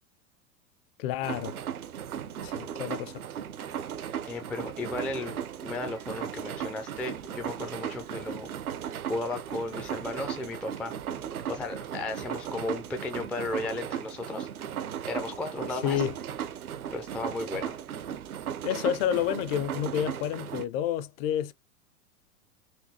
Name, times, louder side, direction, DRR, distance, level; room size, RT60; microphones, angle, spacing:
voice 1, 1.0-1.6 2.4-3.2 15.7-16.2 18.6-21.5, left 10 dB, 45° left, 0.6 m, -29 dB
sound 1, 1.2-20.6, right 9 dB, 85° right, 0.8 m, -36 dB
voice 2, 4.3-8.5 9.1-11.0 11.5-14.5 15.1-16.0 16.9-17.8, left 2 dB, 5° left, 0.3 m, -35 dB
4.5 x 2.8 x 2.7 m
hypercardioid pair, 105°, 42 cm